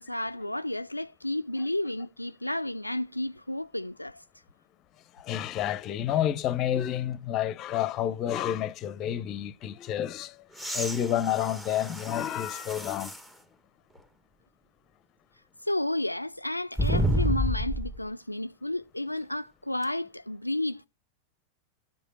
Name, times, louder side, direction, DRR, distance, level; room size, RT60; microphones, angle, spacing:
voice 1, 0.0-4.2 15.6-20.9, left 1 dB, 85° left, 0.4 m, -32 dB
voice 2, 5.1-10.4 10.7-13.1, left 11 dB, 35° left, 0.7 m, -29 dB
sound 1, 10.5-13.3 13.9-14.0 16.7-18.0 19.8-19.9, equal, 10° right, 1.3 m, -30 dB
12.0 x 5.1 x 4.3 m
figure-of-eight pair, 90°, 0 cm